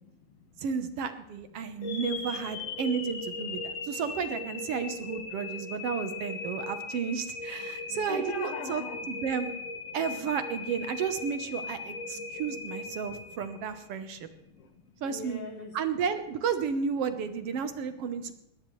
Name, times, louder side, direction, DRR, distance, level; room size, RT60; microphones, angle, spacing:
voice 1, 0.0-0.7 1.6-1.9 3.6-3.9 5.3-5.4 7.8-9.1 12.0-12.4 13.1-13.2 14.2-15.8, left 4 dB, 55° left, 6 dB, 2.0 m, -43 dB
voice 2, 0.6-9.5 9.9-14.3 15.0-15.4 15.7-18.3, right 6 dB, 65° right, 9 dB, 1.6 m, -32 dB
sound 1, 1.8-13.9, left 4 dB, 80° left, 3.3 m, -38 dB
21.0 x 18.0 x 3.2 m, 0.83 s
omnidirectional pair, 3.7 m